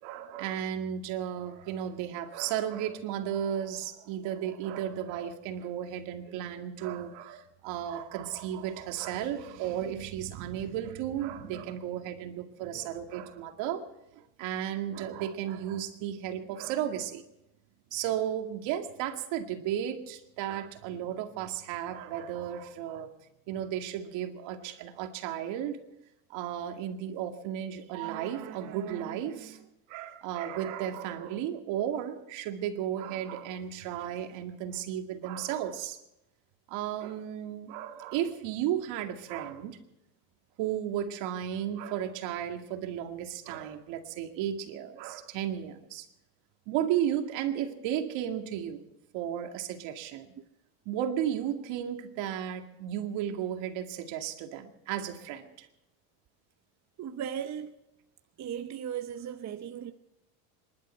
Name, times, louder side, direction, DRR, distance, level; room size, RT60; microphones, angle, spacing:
voice 1, 0.0-13.8 14.1-17.2 17.9-23.1 23.5-25.8 26.3-36.0 36.7-39.8 40.6-46.1 46.7-48.8 49.1-50.3 50.9-55.7, right 10 dB, 65° right, 2.3 m, -34 dB
voice 2, 57.0-57.7 58.4-59.9, right 9 dB, 35° right, 0.9 m, -36 dB
27.0 x 12.0 x 4.5 m
supercardioid pair, 105°, 48 cm